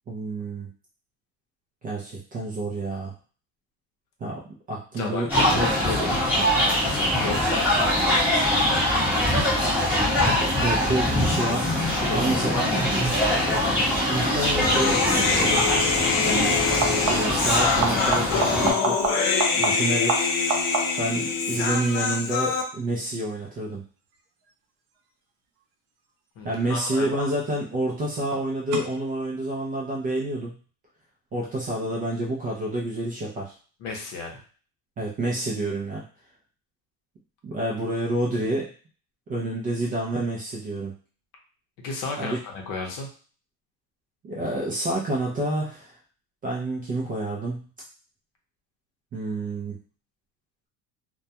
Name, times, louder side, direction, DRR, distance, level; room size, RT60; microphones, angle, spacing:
voice 1, 0.1-0.7 1.8-3.1 4.2-5.7 6.0-6.1 10.6-11.7 12.1-12.7 14.1-15.6 16.2-16.5 17.1-19.0 19.5-20.3 21.0-23.8 26.4-30.5 31.3-33.5 35.0-36.0 37.4-38.7 39.3-40.9 42.2-42.4 44.2-45.9 46.4-47.7 49.1-49.8, right 1 dB, 25° right, -4 dB, 0.3 m, -28 dB
voice 2, 5.0-6.5 6.8-7.8 12.0-12.8 26.4-27.3 33.8-34.4 41.8-43.1, left 4 dB, 55° left, 1 dB, 0.7 m, -33 dB
sound 1, 5.3-18.7, left 1 dB, 5° right, 0.8 m, -23 dB
Human voice, 14.6-22.6, left 5 dB, 90° left, 0.7 m, -25 dB
sound 2, 16.8-17.5 17.8-21.2 26.6-27.2 28.7-28.8, right 5 dB, 85° right, 0.7 m, -29 dB
2.2 x 2.2 x 2.7 m, 0.40 s
cardioid pair, 165°, 38 cm